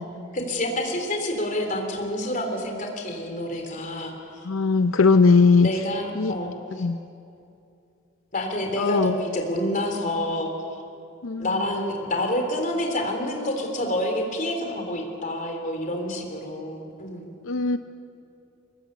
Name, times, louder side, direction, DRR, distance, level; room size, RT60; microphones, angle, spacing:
voice 1, 0.3-4.5 5.6-6.9 8.3-10.7 11.4-17.4, left 1 dB, 40° left, 3 dB, 3.6 m, -28 dB
voice 2, 4.4-5.7 6.2-6.3 6.8-7.0 8.8-9.2 11.2-11.4 17.4-17.8, left 4 dB, 80° left, 9 dB, 0.6 m, -19 dB
23.5 x 20.5 x 8.2 m, 2.6 s
head